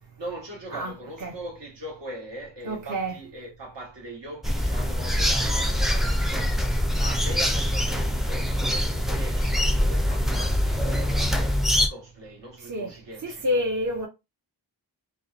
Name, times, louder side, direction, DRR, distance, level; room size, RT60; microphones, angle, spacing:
voice 1, 0.2-13.6, right 1 dB, 65° right, 1.2 m, -41 dB
voice 2, 2.6-3.2 12.7-12.9 13.2-14.1, left 1 dB, 40° right, 0.6 m, -28 dB
sound 1, 4.4-11.9, equal, ahead, 0.3 m, -24 dB
2.6 x 2.1 x 2.3 m
wide cardioid pair, 60°, 45 cm